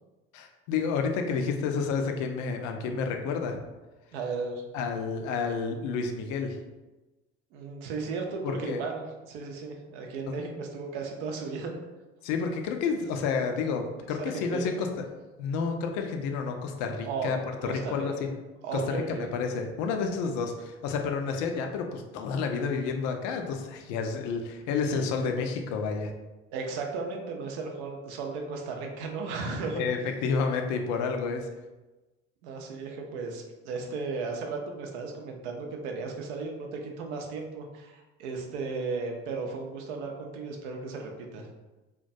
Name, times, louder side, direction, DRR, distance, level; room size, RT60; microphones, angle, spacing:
voice 1, 0.3-3.6 4.7-6.6 8.4-8.8 10.3-10.4 12.2-15.0 15.4-17.4 17.6-18.3 18.7-26.1 29.7-31.5, left 5 dB, 55° left, 4 dB, 0.4 m, -30 dB
voice 2, 4.1-4.6 7.5-11.7 14.2-14.9 17.0-18.3 18.6-19.3 26.5-29.8 32.4-41.5, right 4 dB, 70° right, 2 dB, 0.5 m, -35 dB
2.2 x 2.1 x 2.6 m, 1.1 s
figure-of-eight pair, 55°, 35 cm